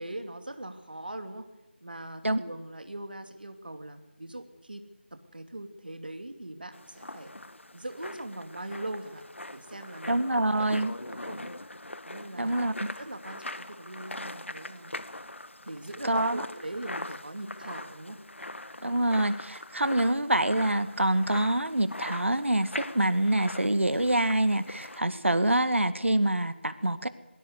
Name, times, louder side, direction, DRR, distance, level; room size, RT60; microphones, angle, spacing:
voice 1, 0.0-1.5 1.8-4.8 5.1-7.3 7.7-9.2 9.5-11.5 12.0-12.6 13.0-14.9 15.7-18.2, right 1 dB, 50° right, 7 dB, 2.5 m, -41 dB
sound 1, 6.7-25.0, left 1 dB, 80° left, 1.3 m, -42 dB
voice 2, 10.1-10.9 12.3-12.9 16.0-16.5 18.8-27.1, right 1 dB, 85° right, 12 dB, 2.0 m, -26 dB
23.0 x 15.5 x 8.2 m, 1.0 s
figure-of-eight pair, 180°, 6 cm